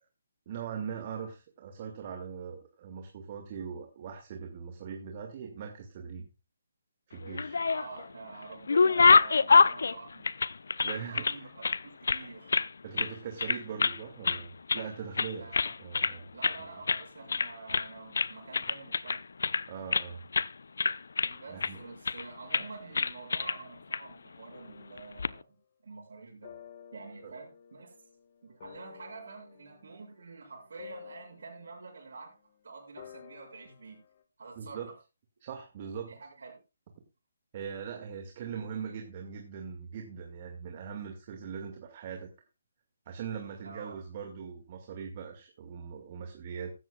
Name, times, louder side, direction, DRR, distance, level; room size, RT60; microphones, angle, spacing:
voice 1, 0.5-6.3 7.1-7.6 10.8-11.3 12.8-15.5 15.8-16.3 19.7-20.2 21.5-21.8 27.2-27.3 34.6-34.9 35.4-36.1 37.5-42.3 43.1-46.7, right 7 dB, 40° right, 4 dB, 2.0 m, -40 dB
sound 1, 7.2-8.1 8.4-11.4 11.6-12.7 13.0-13.1 13.4-14.0 14.2-14.9 15.2-16.2 16.4-16.6 16.9-17.0 17.3-17.9 18.2-20.1 20.3-20.5 20.8-21.7 22.1-22.3 22.5-22.7 23.0-23.6 23.9-24.0 25.0-25.3, left 4 dB, 65° left, 0.6 m, -26 dB
voice 2, 7.7-10.3 11.0-12.5 15.4-15.7 16.3-19.2 21.2-25.6 25.8-26.5 26.9-28.0 28.4-32.3 32.6-34.0 34.4-34.9 36.1-36.6 43.6-43.9, right 4 dB, 65° right, -6 dB, 5.9 m, -47 dB
sound 2, 24.5-25.3 26.4-32.5 33.0-34.2, left 8 dB, 40° left, 1.5 m, -52 dB
15.5 x 13.0 x 2.4 m, 0.29 s
figure-of-eight pair, 145°, 0 cm